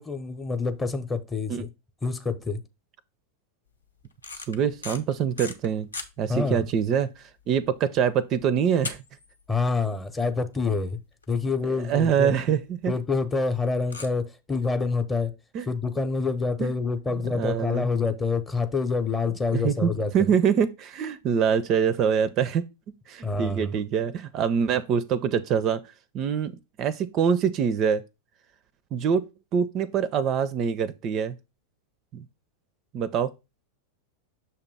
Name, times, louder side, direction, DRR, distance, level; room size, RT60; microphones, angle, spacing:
voice 1, 0.0-1.7 2.0-2.6 6.3-6.6 9.5-11.0 11.3-12.3 12.9-15.3 15.7-20.1 23.2-23.7, left 4 dB, 15° left, 0.7 m, -27 dB
sound 1, 4.1-6.1 6.6-6.7 7.0-7.2 7.6-7.7 8.8-9.7 9.9-10.0 10.5-10.6 10.9-11.0 11.2-11.3 12.5-12.6 13.9-14.1, left 3 dB, 75° left, 0.8 m, -37 dB
voice 2, 4.5-5.9 6.2-9.0 11.6-12.9 15.5-15.7 16.6-16.7 17.3-17.9 19.5-22.6 23.1-25.8 26.1-28.0 28.9-29.2 29.5-31.4 32.1-32.2 32.9-33.3, right 7 dB, 35° right, 0.4 m, -25 dB
6.6 x 2.9 x 5.3 m
figure-of-eight pair, 90°, 0 cm